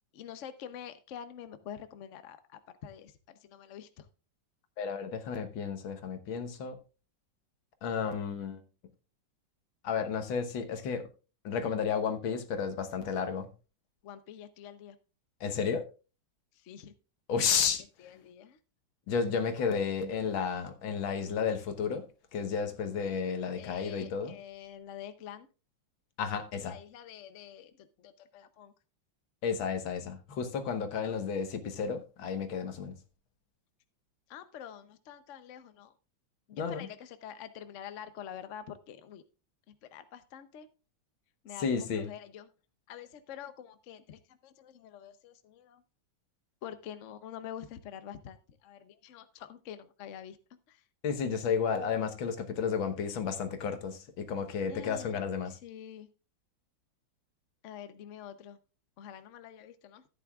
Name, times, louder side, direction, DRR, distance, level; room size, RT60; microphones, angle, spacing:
voice 1, 0.1-4.1 14.0-15.0 16.5-16.9 18.0-18.6 23.5-25.5 26.5-28.7 30.9-31.2 34.3-35.9 36.5-39.2 39.7-40.7 41.4-42.5 42.9-45.8 46.6-50.4 50.7-50.8 54.7-55.2 55.4-56.1 57.6-58.6 59.0-60.0, left 9 dB, 60° left, 0.8 m, -46 dB
voice 2, 4.8-6.8 7.8-8.6 9.8-11.1 11.4-13.5 15.4-15.8 17.3-17.8 19.1-22.1 22.3-24.3 26.2-26.7 29.4-33.0 36.6-36.9 41.6-42.1 51.0-55.6, left 6 dB, 85° left, 1.9 m, -32 dB
14.0 x 9.5 x 2.3 m
omnidirectional pair, 2.1 m